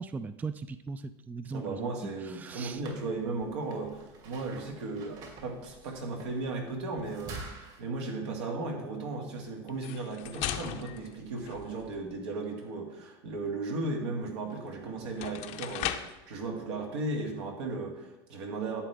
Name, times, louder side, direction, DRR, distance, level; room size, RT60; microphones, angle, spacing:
voice 1, 0.0-1.9 2.4-2.8, right 4 dB, 10° right, 13 dB, 0.3 m, -38 dB
voice 2, 1.5-18.8, right 3 dB, 85° right, 0 dB, 2.1 m, -36 dB
sound 1, 2.6-7.8, right 3 dB, 55° right, 2.5 m, -48 dB
sound 2, 9.7-12.1 14.5-14.6 15.0-16.2, left 12 dB, 55° left, 0.7 m, -38 dB
11.5 x 7.7 x 3.5 m, 0.98 s
supercardioid pair, 120°, 14 cm